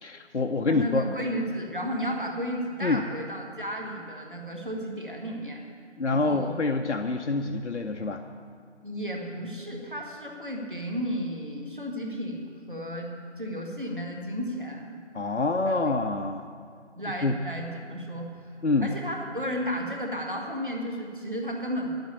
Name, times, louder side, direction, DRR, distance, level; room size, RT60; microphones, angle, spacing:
voice 1, 0.0-1.1 2.8-3.0 6.0-8.2 15.1-16.5 17.2-17.4 18.6-18.9, left 3 dB, 75° left, 5 dB, 0.7 m, -26 dB
voice 2, 0.7-5.7 6.1-6.5 8.8-14.9 15.6-15.9 16.9-18.5 18.8-21.9, equal, 45° right, 0 dB, 1.7 m, -33 dB
11.0 x 7.8 x 8.2 m, 2.3 s
figure-of-eight pair, 180°, 35 cm